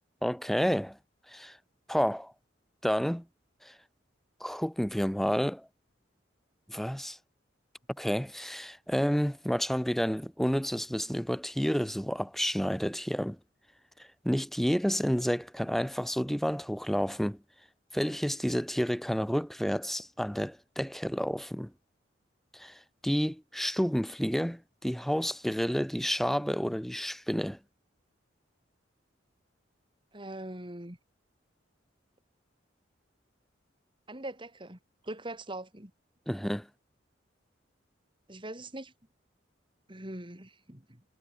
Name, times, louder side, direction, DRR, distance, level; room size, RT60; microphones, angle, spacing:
voice 1, 0.2-1.0 1.3-1.6 1.9-2.3 2.8-3.2 3.6-3.7 4.4-5.7 6.7-7.2 8.0-13.4 14.2-17.4 17.9-21.7 22.5-27.6 36.3-36.7, equal, ahead, 0.8 m, -30 dB
voice 2, 30.1-31.0 34.1-35.9 38.3-38.9 39.9-41.0, right 1 dB, 25° right, 3.0 m, -42 dB
head